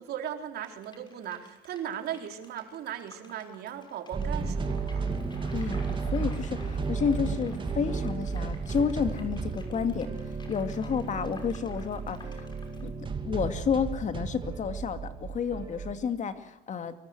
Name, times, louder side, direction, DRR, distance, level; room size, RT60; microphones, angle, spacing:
voice 1, 0.0-5.0, right 9 dB, 70° right, 5 dB, 4.0 m, -37 dB
sound 1, 0.6-12.9, left 2 dB, 25° left, 6.2 m, -53 dB
sound 2, 4.1-15.9, right 5 dB, 30° right, 2.6 m, -33 dB
sound 3, 4.8-10.8, left 5 dB, 80° left, 4.2 m, -49 dB
voice 2, 5.5-10.1 10.5-12.5 12.8-12.9 13.2-16.9, left 6 dB, 45° left, 9 dB, 2.4 m, -31 dB
24.5 x 23.0 x 7.9 m, 0.89 s
cardioid pair, 110°, 17 cm